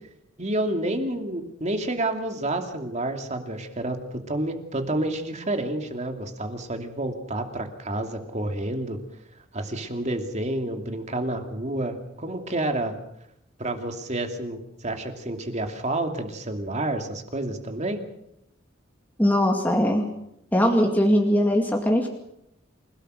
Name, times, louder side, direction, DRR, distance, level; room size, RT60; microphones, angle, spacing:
voice 1, 0.4-9.0 9.5-12.9 13.6-18.0, right 1 dB, 35° right, 5 dB, 2.6 m, -29 dB
voice 2, 19.2-20.0 20.5-22.1, equal, 10° left, 1 dB, 2.2 m, -20 dB
28.5 x 17.5 x 6.4 m, 0.79 s
head